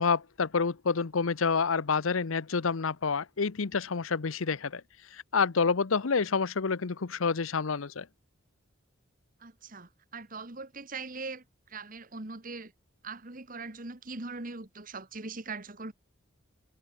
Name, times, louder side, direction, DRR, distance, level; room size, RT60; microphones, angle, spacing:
voice 1, 0.0-4.8 5.1-8.1, left 5 dB, 85° left, 0.8 m, -28 dB
voice 2, 9.4-12.7 13.0-15.9, right 3 dB, 40° right, 1.8 m, -41 dB
head